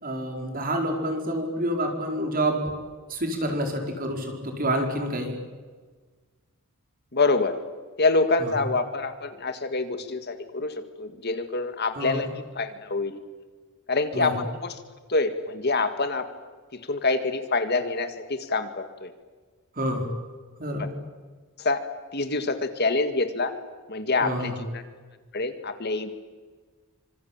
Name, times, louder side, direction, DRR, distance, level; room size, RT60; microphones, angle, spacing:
voice 1, 0.0-2.6 3.1-5.4 8.4-8.5 11.9-12.3 14.1-14.4 19.8-20.1 20.6-20.9 24.2-24.6, right 1 dB, 40° right, 3 dB, 4.9 m, -28 dB
voice 2, 7.1-7.6 8.0-13.2 13.9-14.5 15.1-16.3 16.7-19.1 21.6-21.8 22.1-23.5 23.9-24.8 25.3-26.1, left 3 dB, 50° left, 9 dB, 1.9 m, -26 dB
25.5 x 25.5 x 8.8 m, 1.4 s
head